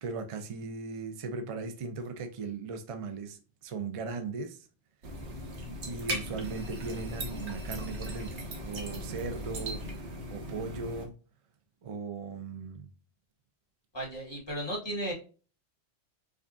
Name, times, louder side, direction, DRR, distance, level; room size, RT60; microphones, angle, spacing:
voice 1, 0.0-4.6 5.8-9.8 10.3-11.1 11.8-12.9, right 4 dB, 40° right, 0.5 m, -38 dB
sound 1, 5.0-11.0, equal, 75° right, 1.2 m, -38 dB
voice 2, 13.9-15.1, right 1 dB, 25° left, 1.7 m, -34 dB
4.9 x 2.4 x 2.5 m
omnidirectional pair, 1.2 m